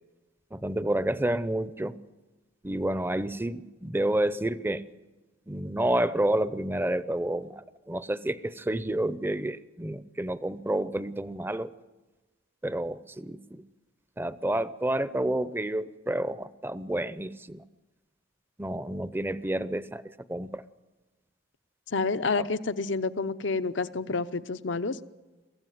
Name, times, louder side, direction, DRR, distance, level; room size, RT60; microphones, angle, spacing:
voice 1, 0.5-2.0 2.6-4.8 5.5-11.7 12.6-13.6 14.2-17.6 18.6-20.0 20.3-20.6 22.4-22.5, right 1 dB, 10° right, 14 dB, 0.6 m, -29 dB
voice 2, 21.9-25.0, left 4 dB, 70° left, 13 dB, 0.8 m, -29 dB
23.0 x 15.5 x 9.3 m, 1.2 s
head